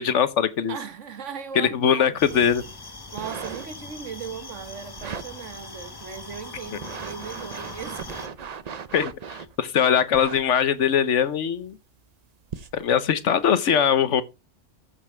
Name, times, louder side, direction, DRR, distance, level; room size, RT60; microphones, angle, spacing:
voice 1, 0.0-0.8 1.5-2.6 8.9-9.1 9.6-11.8 12.7-14.2, left 8 dB, 75° left, 1.2 m, -21 dB
voice 2, 0.7-2.4 3.1-8.5, right 7 dB, 75° right, 1.5 m, -38 dB
sound 1, 2.2-8.3, left 3 dB, 20° left, 0.9 m, -41 dB
sound 2, 3.0-3.9 5.0-5.3 5.9-6.0 6.6-9.5 10.1-10.4 11.4-11.5 12.5-12.8 13.5-13.6, right 6 dB, 40° right, 0.6 m, -37 dB
14.0 x 5.6 x 4.3 m
omnidirectional pair, 1.3 m